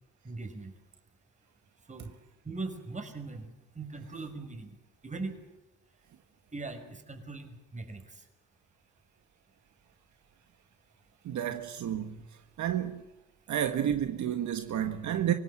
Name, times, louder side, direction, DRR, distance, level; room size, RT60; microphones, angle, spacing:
voice 1, 0.2-0.7 1.9-2.1 2.4-4.7 5.0-5.3 6.5-8.3, right 3 dB, 25° right, 5.8 m, -40 dB
voice 2, 11.2-12.2 12.6-13.0 13.5-15.3, right 10 dB, 70° right, 1.7 m, -30 dB
25.0 x 18.5 x 7.8 m
cardioid pair, 90°, 30 cm